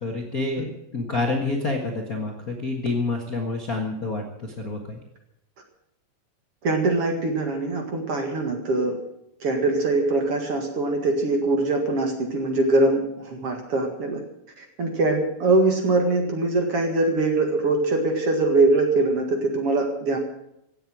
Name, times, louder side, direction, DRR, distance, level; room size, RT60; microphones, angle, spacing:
voice 1, 0.0-5.0, left 3 dB, 40° left, 1 dB, 1.3 m, -28 dB
voice 2, 6.6-9.0 9.4-14.2 14.6-20.2, right 2 dB, 45° right, 3 dB, 2.5 m, -22 dB
16.5 x 8.0 x 9.3 m, 0.79 s
omnidirectional pair, 4.0 m